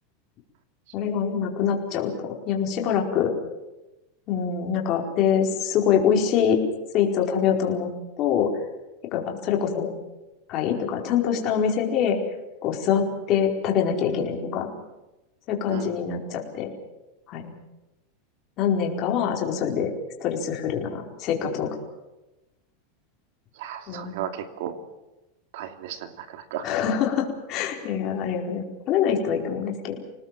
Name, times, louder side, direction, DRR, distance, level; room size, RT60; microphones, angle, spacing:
voice 1, 0.9-3.3 4.3-6.6 6.9-7.9 8.2-8.5 9.1-9.9 10.5-12.2 12.6-14.7 15.5-16.7 17.3-17.5 18.6-19.9 20.2-21.7 23.9-24.1 26.6-30.0, left 8 dB, 40° left, 1 dB, 4.7 m, -24 dB
voice 2, 23.6-24.8 25.5-26.7, right 10 dB, 65° right, 8 dB, 2.8 m, -35 dB
27.5 x 19.0 x 7.6 m, 1.0 s
supercardioid pair, 150°, 0 cm